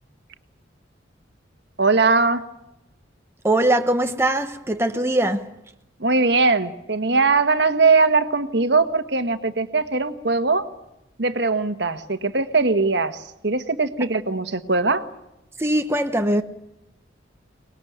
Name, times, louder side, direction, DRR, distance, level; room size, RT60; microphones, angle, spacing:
voice 1, 1.8-2.4 6.0-10.7 11.2-15.0, right 3 dB, 65° right, 1.5 m, -20 dB
voice 2, 3.4-5.5 15.6-16.4, right 1 dB, 15° right, 1.0 m, -21 dB
24.0 x 20.5 x 9.4 m
head